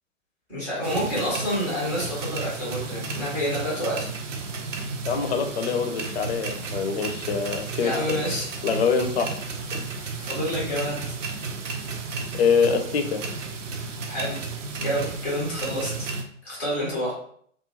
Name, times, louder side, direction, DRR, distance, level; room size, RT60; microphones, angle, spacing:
voice 1, 0.5-4.1 7.8-8.5 10.2-11.0 14.1-14.4 14.8-16.1 16.4-17.1, equal, 5° right, -6 dB, 0.4 m, -28 dB
sound 1, 0.8-16.2, right 4 dB, 70° right, 0.6 m, -33 dB
voice 2, 5.1-7.9 8.6-9.3 9.7-9.8 12.4-13.2, left 6 dB, 55° left, 6 dB, 0.5 m, -24 dB
2.4 x 2.2 x 2.8 m, 0.62 s
figure-of-eight pair, 115°, 39 cm